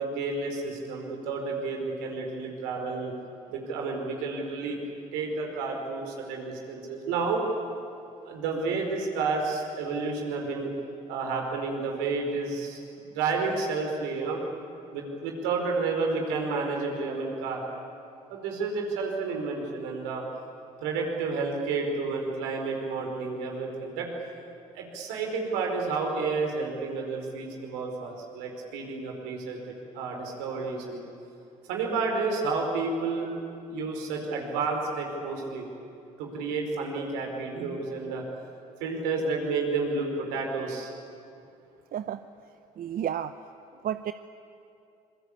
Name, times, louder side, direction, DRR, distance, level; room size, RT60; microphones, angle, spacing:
voice 1, 0.0-3.1 3.5-4.8 5.1-7.4 8.2-10.7 11.1-14.4 14.9-17.6 18.3-20.2 20.8-24.1 24.7-31.0 31.7-33.3 33.7-35.7 36.2-38.2 38.8-40.9, right 4 dB, 80° right, 1 dB, 4.7 m, -30 dB
voice 2, 42.8-43.3 43.8-44.1, right 10 dB, 50° right, 11 dB, 0.8 m, -31 dB
26.5 x 22.5 x 8.5 m, 2.6 s
hypercardioid pair, 55°, 18 cm